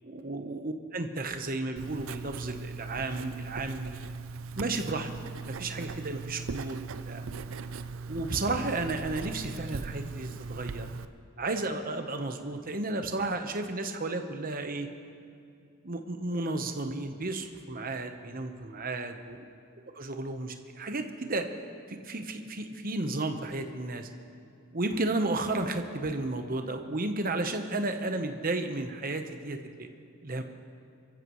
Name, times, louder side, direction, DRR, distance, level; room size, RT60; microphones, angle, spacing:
voice 1, 0.1-4.0 4.5-5.1 5.5-7.2 8.0-10.9 11.4-14.9 15.8-19.4 20.0-21.5 21.9-24.1 24.7-29.9 30.2-30.4, right 2 dB, 40° right, 6 dB, 1.0 m, -33 dB
Writing, 1.8-11.1, right 4 dB, 60° right, 0.5 m, -39 dB
25.0 x 14.5 x 3.1 m, 2.5 s
head